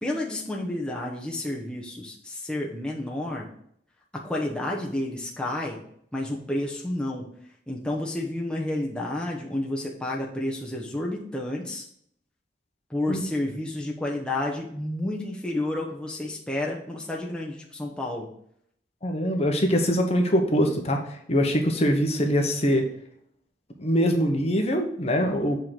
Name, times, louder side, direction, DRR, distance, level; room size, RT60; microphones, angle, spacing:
voice 1, 0.0-3.5 4.1-5.8 6.1-7.3 7.7-11.9 12.9-18.3, left 1 dB, 5° left, -2 dB, 1.0 m, -30 dB
voice 2, 19.0-22.8 23.8-25.6, equal, 35° left, 3 dB, 1.2 m, -23 dB
7.5 x 3.8 x 5.9 m, 0.67 s
head